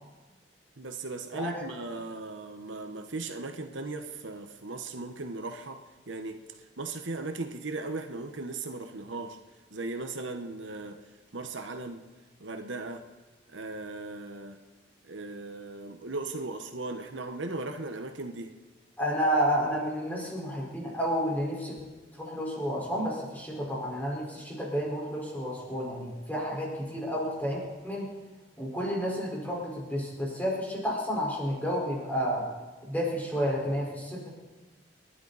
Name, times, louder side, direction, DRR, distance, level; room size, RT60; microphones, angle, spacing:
voice 1, 0.8-9.4 9.7-11.0 11.3-12.0 12.4-13.0 13.5-14.6 15.0-18.5, right 3 dB, 75° right, 6 dB, 1.2 m, -37 dB
voice 2, 1.3-1.7 19.0-21.8 22.1-28.1 28.6-32.4 32.9-34.3, equal, 10° left, -3 dB, 4.6 m, -31 dB
30.0 x 11.5 x 4.1 m, 1.3 s
head